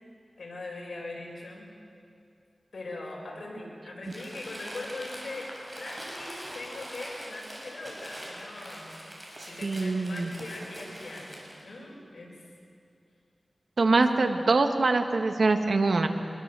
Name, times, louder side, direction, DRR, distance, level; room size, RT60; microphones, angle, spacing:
voice 1, 0.4-1.7 2.7-5.5 5.8-8.9 9.4-11.3 11.6-12.4 13.9-14.0, left 2 dB, 80° left, -2 dB, 6.7 m, -41 dB
Crumpling crinkling, 4.0-11.6, equal, 15° right, 6.7 m, -43 dB
voice 2, 9.4-10.3 13.8-16.1, right 3 dB, 65° right, 6 dB, 1.7 m, -24 dB
25.0 x 22.0 x 7.7 m, 2.5 s
wide cardioid pair, 105°, 0 cm